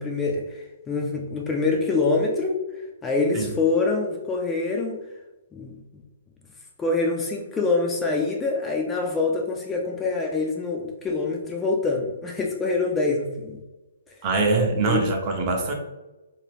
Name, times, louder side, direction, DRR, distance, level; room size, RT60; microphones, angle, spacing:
voice 1, 0.0-2.6 3.0-5.0 5.5-5.7 6.8-13.6 14.9-15.0, left 3 dB, 15° left, 0 dB, 0.4 m, -25 dB
voice 2, 14.2-15.7, right 3 dB, 30° right, 2 dB, 0.6 m, -23 dB
2.7 x 2.5 x 3.3 m, 1.1 s
hypercardioid pair, 135°, 0 cm